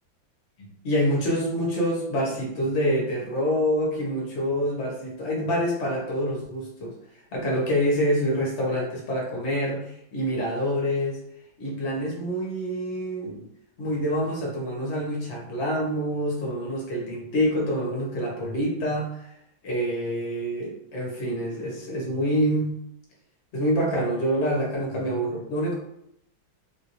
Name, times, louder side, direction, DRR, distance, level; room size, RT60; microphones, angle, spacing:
voice 1, 0.6-6.9 7.3-11.2 11.6-13.4 13.8-19.3 19.6-22.8 23.5-25.7, equal, 45° left, -2 dB, 1.0 m, -26 dB
3.1 x 2.5 x 2.9 m, 0.76 s
omnidirectional pair, 2.1 m